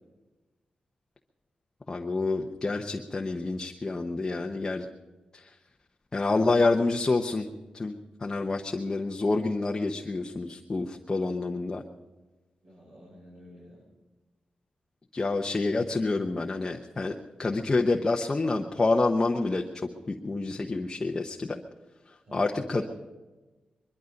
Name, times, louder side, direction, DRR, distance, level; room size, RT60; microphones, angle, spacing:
voice 1, 1.9-4.9 5.3-5.4 6.1-7.5 7.7-8.0 8.2-11.8 15.1-19.6 20.1-21.6 22.3-22.8, left 3 dB, 25° left, 2 dB, 0.9 m, -28 dB
voice 2, 12.6-13.8 22.2-22.8, equal, 50° right, -5 dB, 6.4 m, -48 dB
22.0 x 12.5 x 5.2 m, 1.2 s
wide cardioid pair, 140°, 3 cm